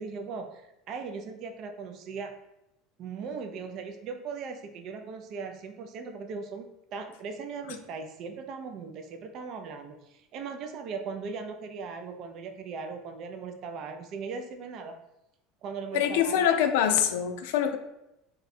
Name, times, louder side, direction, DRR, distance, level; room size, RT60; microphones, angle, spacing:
voice 1, 0.0-2.3 3.0-15.0 15.6-16.4, right 5 dB, 50° right, 6 dB, 0.3 m, -38 dB
voice 2, 15.9-17.8, left 9 dB, 80° left, 7 dB, 0.3 m, -24 dB
2.6 x 2.2 x 4.0 m, 0.90 s
supercardioid pair, 115°, 0 cm